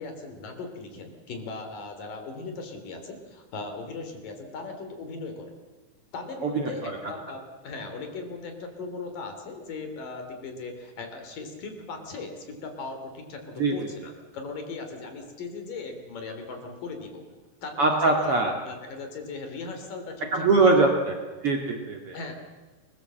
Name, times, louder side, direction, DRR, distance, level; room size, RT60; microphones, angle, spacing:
voice 1, 0.0-5.5 6.1-17.2 17.6-18.3 18.6-20.6 22.1-22.3, left 3 dB, 85° left, 6 dB, 4.8 m, -38 dB
voice 2, 6.4-7.0 13.6-13.9 17.8-18.5 20.3-21.1 21.4-22.2, right 3 dB, 45° right, 1 dB, 2.8 m, -22 dB
29.0 x 20.0 x 7.8 m, 1.3 s
omnidirectional pair, 3.8 m